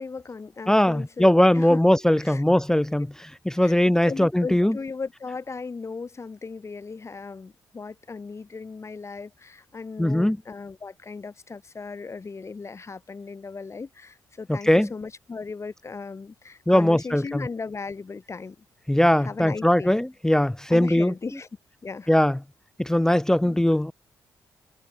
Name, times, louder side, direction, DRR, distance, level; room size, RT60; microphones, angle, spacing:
voice 1, 0.0-1.3 1.5-1.8 2.2-2.4 3.6-3.8 4.0-18.6 19.2-20.0 20.7-21.5 21.8-22.1 23.4-23.6, left 4 dB, 35° left, 2.6 m, -37 dB
voice 2, 0.7-4.8 10.0-10.4 14.5-14.9 16.7-17.5 18.9-21.1 22.1-22.4 22.8-23.9, left 1 dB, 5° left, 0.4 m, -20 dB
hypercardioid pair, 50°, 8 cm